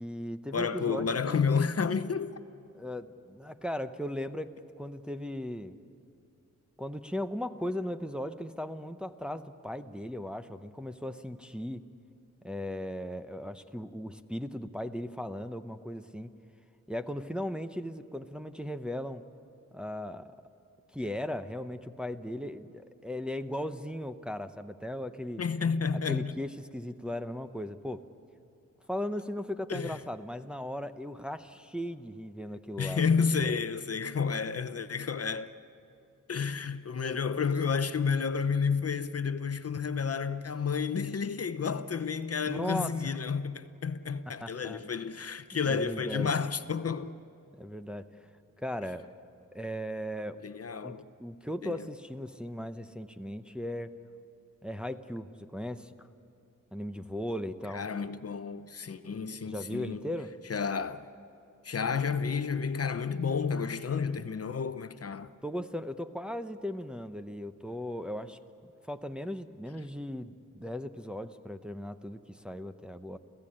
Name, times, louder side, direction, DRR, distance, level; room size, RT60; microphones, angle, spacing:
voice 1, 0.0-1.4 2.7-5.8 6.8-11.8 12.4-16.3 16.9-19.3 19.7-20.4 20.9-25.4 26.1-28.0 28.9-33.0 33.4-33.5 42.4-43.2 44.3-44.8 45.6-46.3 47.6-48.2 48.6-49.1 49.5-50.4 50.8-50.9 51.2-53.9 54.6-56.1 56.7-57.9 59.4-60.3 65.4-68.4 68.9-73.2, left 1 dB, 5° right, 0.8 m, -37 dB
voice 2, 0.5-2.3 25.4-26.3 29.7-30.0 32.8-35.5 36.3-47.1 50.4-51.1 51.6-51.8 57.7-60.0 60.5-61.1 61.6-65.3, left 5 dB, 45° left, 0.8 m, -31 dB
29.5 x 15.5 x 8.7 m
wide cardioid pair, 90°, 33 cm